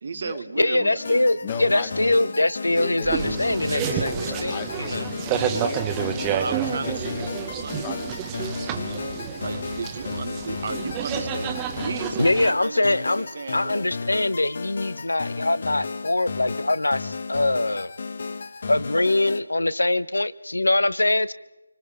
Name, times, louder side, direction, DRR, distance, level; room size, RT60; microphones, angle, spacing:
voice 1, 0.0-1.7 6.3-8.7 9.4-13.8, right 5 dB, 40° right, 1.1 m, -35 dB
voice 2, 0.6-5.1 12.2-13.3 13.5-17.9 18.7-21.3, left 2 dB, 85° left, 0.9 m, -23 dB
sound 1, 1.0-19.4, left 4 dB, 45° left, 1.1 m, -34 dB
voice 3, 1.4-8.1 18.4-18.6, left 8 dB, 20° left, 1.5 m, -39 dB
sound 2, 3.0-12.5, right 8 dB, 15° right, 1.0 m, -30 dB
26.0 x 25.0 x 5.0 m
figure-of-eight pair, 165°, 0 cm